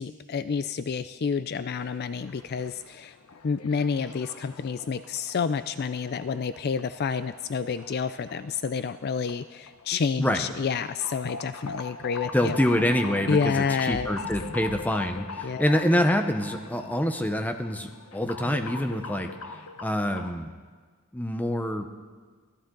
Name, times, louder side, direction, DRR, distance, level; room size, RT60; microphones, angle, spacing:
voice 1, 0.0-3.2 3.4-12.6 13.3-14.2 15.4-15.8, left 5 dB, 45° left, 13 dB, 0.4 m, -29 dB
sound 1, 1.8-20.3, left 4 dB, 80° left, 1.1 m, -41 dB
voice 2, 12.3-19.3 19.8-20.5 21.1-21.9, left 1 dB, 5° left, 6 dB, 0.9 m, -26 dB
24.0 x 14.5 x 3.9 m, 1.5 s
head